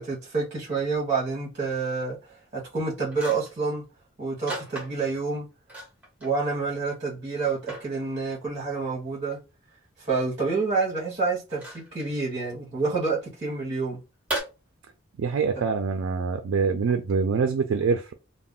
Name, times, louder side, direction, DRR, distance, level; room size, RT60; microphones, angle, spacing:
voice 1, 0.0-2.2 2.5-3.8 4.2-5.5 6.2-9.4 10.0-14.0 15.5-15.6, right 4 dB, 35° right, 0.9 m, -28 dB
sound 1, 3.1-3.6 4.5-5.2 5.7-6.4 6.7-6.8 7.4-7.9 9.3-9.4 11.5-12.1 14.3-14.4, right 1 dB, 5° right, 1.0 m, -35 dB
voice 2, 15.2-18.1, right 5 dB, 80° right, 0.3 m, -25 dB
2.3 x 2.0 x 3.6 m
head